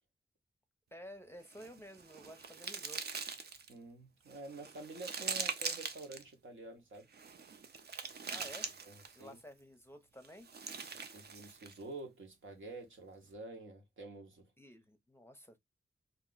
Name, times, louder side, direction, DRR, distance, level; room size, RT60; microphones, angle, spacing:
voice 1, 0.9-3.2 8.3-8.7 9.1-10.5 14.6-15.6, equal, 10° left, 0.6 m, -52 dB
sound 1, 1.5-3.7 4.3-6.2 7.1-9.3 10.2-11.8, right 5 dB, 55° right, 0.5 m, -42 dB
voice 2, 3.7-7.1 8.9-9.4 10.8-14.5, right 2 dB, 75° right, 1.0 m, -49 dB
2.5 x 2.0 x 3.8 m
cardioid pair, 70°, 20 cm